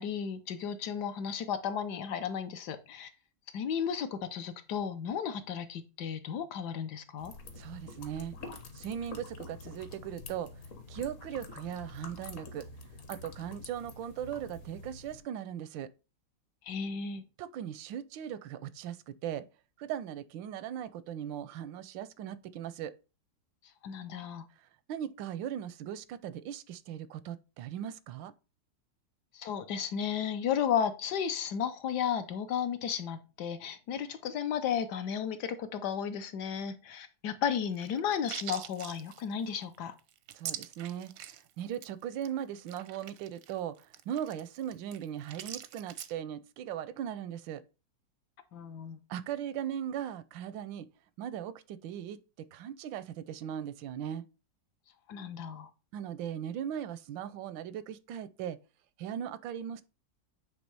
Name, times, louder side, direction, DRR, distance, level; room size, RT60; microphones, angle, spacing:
voice 1, 0.0-3.1 3.5-7.3 16.6-17.2 23.8-24.5 29.3-39.9 48.5-49.0 55.1-55.7, left 8 dB, 70° left, 1.2 m, -34 dB
sound 1, 7.2-15.2, left 3 dB, 50° left, 1.3 m, -47 dB
voice 2, 7.5-8.4 8.7-10.5 10.9-12.7 13.1-15.9 17.4-19.5 19.8-22.9 24.9-28.3 40.3-47.6 49.1-50.9 51.2-54.2 55.9-58.6 59.0-59.8, right 10 dB, 85° right, 1.3 m, -38 dB
sound 2, 37.8-41.5 41.7-41.9 42.2-42.3 42.6-46.1, right 10 dB, 70° right, 0.8 m, -43 dB
8.3 x 3.3 x 4.7 m
omnidirectional pair, 2.0 m